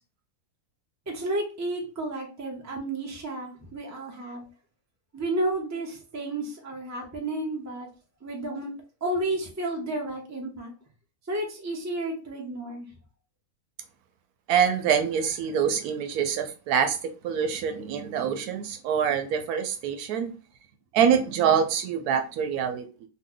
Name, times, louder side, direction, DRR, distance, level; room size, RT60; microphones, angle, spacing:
voice 1, 1.1-4.5 5.1-7.9 8.2-8.7 9.0-10.7 11.3-12.9, right 1 dB, 25° right, 1 dB, 0.3 m, -32 dB
voice 2, 14.5-17.0 17.2-20.3 20.9-22.9, right 7 dB, 90° right, 7 dB, 1.1 m, -25 dB
3.0 x 2.1 x 3.7 m, 0.34 s
omnidirectional pair, 1.6 m